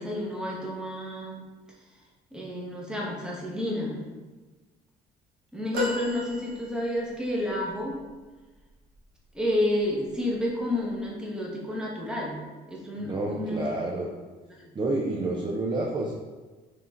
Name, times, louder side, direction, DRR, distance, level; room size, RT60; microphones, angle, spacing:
voice 1, 0.0-1.4 2.3-4.1 5.5-8.0 9.3-12.4 12.7-13.7 14.6-14.7, left 1 dB, 5° right, -4 dB, 0.9 m, -30 dB
sound 1, 5.7-7.1 7.9-8.0, left 1 dB, 65° right, 1.1 m, -32 dB
voice 2, 13.0-14.1 14.7-16.1, right 2 dB, 25° right, -2 dB, 0.4 m, -29 dB
4.7 x 3.1 x 2.5 m, 1.3 s
cardioid pair, 110°, 17 cm